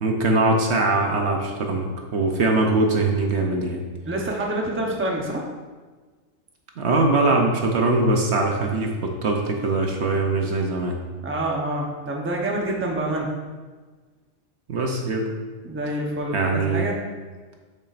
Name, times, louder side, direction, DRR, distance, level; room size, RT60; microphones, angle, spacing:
voice 1, 0.0-3.8 6.8-11.0 14.7-15.3 16.3-16.9, right 2 dB, 60° right, 2 dB, 1.0 m, -22 dB
voice 2, 4.0-5.5 11.2-13.3 15.6-17.0, right 1 dB, 10° right, -1 dB, 0.7 m, -27 dB
7.8 x 7.1 x 2.5 m, 1.4 s
omnidirectional pair, 1.4 m